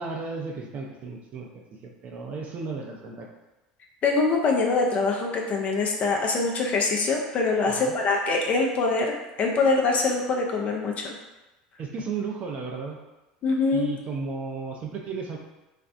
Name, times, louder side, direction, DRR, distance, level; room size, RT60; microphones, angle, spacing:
voice 1, 0.0-1.5 1.8-3.3 7.6-7.9 11.8-13.0 13.7-15.4, right 4 dB, 45° right, 1 dB, 0.5 m, -34 dB
voice 2, 4.0-11.2 13.4-13.9, left 3 dB, 40° left, 1 dB, 0.5 m, -24 dB
2.5 x 2.0 x 2.5 m, 1.0 s
hypercardioid pair, 85°, 4 cm